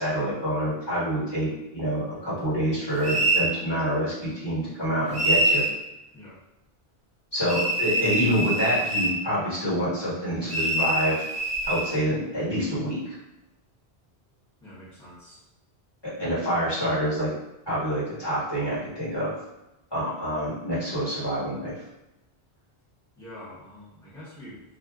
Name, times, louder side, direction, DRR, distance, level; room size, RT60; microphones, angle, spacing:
voice 1, 0.0-5.6 7.3-11.1 11.6-13.0 16.2-17.3 17.7-19.3 19.9-21.7, equal, 25° left, -10 dB, 1.4 m, -27 dB
sound 1, 3.0-3.5 5.1-5.7 7.5-9.2 10.5-11.9, right 1 dB, 40° right, 0.5 m, -24 dB
voice 2, 14.6-15.4 23.2-24.6, left 1 dB, 5° left, -12 dB, 0.9 m, -45 dB
2.6 x 2.4 x 3.5 m, 0.95 s
omnidirectional pair, 1.1 m